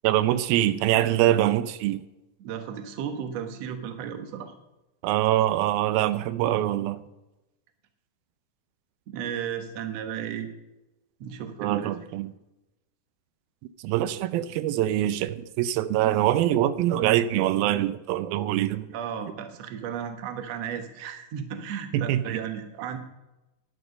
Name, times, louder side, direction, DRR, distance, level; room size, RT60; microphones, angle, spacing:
voice 1, 0.0-2.0 5.0-7.0 11.6-12.3 13.8-18.9 21.9-22.4, right 13 dB, 90° right, 2.5 m, -24 dB
voice 2, 2.4-4.5 9.1-10.5 11.2-12.1 18.9-23.0, right 8 dB, 60° right, 2.0 m, -34 dB
12.0 x 11.0 x 5.4 m
omnidirectional pair, 4.2 m